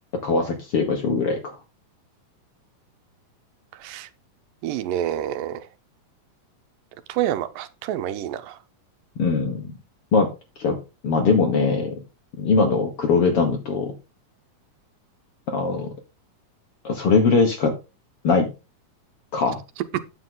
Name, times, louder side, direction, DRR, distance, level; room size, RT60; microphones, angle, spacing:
voice 1, 0.2-1.6 9.2-9.7 10.1-10.3 10.6-10.8 11.0-12.0 12.4-13.9 15.5-15.9 16.8-17.8 18.2-18.5 19.3-19.6, left 4 dB, 55° left, 1.7 m, -21 dB
voice 2, 4.6-5.7 7.1-8.6, right 11 dB, 85° right, 2.5 m, -28 dB
9.4 x 7.6 x 3.9 m
omnidirectional pair, 3.8 m